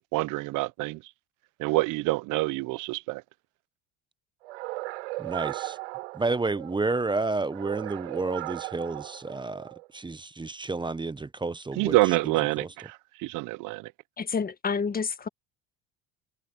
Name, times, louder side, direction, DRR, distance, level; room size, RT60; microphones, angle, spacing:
voice 1, 0.1-1.0 1.6-3.2 11.8-12.7 13.2-13.8, right 21 dB, 70° right, 0.9 m, -26 dB
sound 1, 4.4-6.9 7.4-9.9, right 22 dB, 90° right, 6.5 m, -37 dB
voice 2, 5.2-5.8 6.1-12.7, right 3 dB, 15° right, 0.9 m, -31 dB
voice 3, 14.2-15.3, left 5 dB, 25° left, 1.7 m, -29 dB
supercardioid pair, 85°, 32 cm